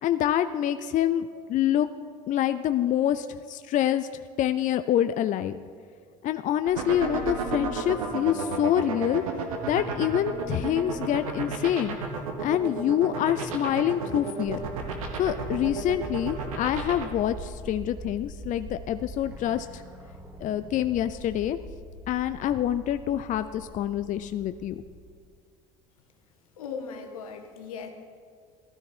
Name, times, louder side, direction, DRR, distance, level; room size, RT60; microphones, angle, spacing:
voice 1, 0.0-1.9 2.3-5.6 6.2-9.2 9.7-12.0 12.4-14.6 15.2-19.8 20.4-21.6 22.1-24.8, left 11 dB, 45° left, 11 dB, 0.5 m, -26 dB
sound 1, 6.7-17.0, right 6 dB, 85° right, 1.6 m, -31 dB
sound 2, 14.5-25.1, right 1 dB, 15° right, 2.6 m, -42 dB
voice 2, 26.6-27.9, left 5 dB, 85° left, 4 dB, 1.4 m, -38 dB
15.0 x 13.0 x 4.5 m, 2.2 s
hypercardioid pair, 70°, 18 cm